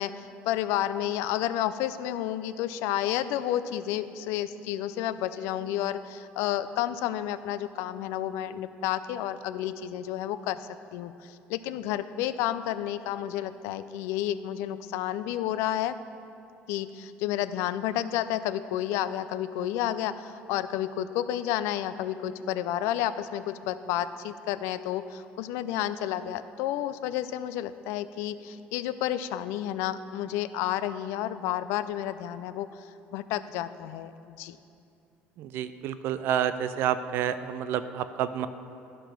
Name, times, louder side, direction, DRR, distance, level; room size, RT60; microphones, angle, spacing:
voice 1, 0.0-15.9 16.7-34.6, left 12 dB, 90° left, 13 dB, 0.4 m, -31 dB
voice 2, 35.4-38.5, right 10 dB, 60° right, 12 dB, 0.4 m, -29 dB
12.0 x 5.1 x 5.9 m, 2.7 s
cardioid pair, 155°, 4 cm